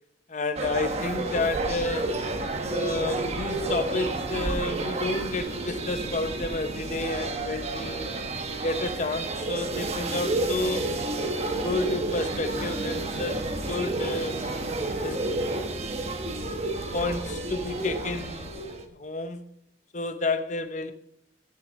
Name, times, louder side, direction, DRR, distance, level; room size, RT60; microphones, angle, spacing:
voice 1, 0.3-2.3 2.7-8.1 8.6-10.9 11.6-14.4 15.0-15.2 16.9-18.6 18.9-19.5 19.9-20.9, left 2 dB, 40° left, 0.8 m, -30 dB
sound 1, 0.6-18.9, right 2 dB, 35° right, 1.2 m, -30 dB
12.5 x 6.6 x 5.1 m
head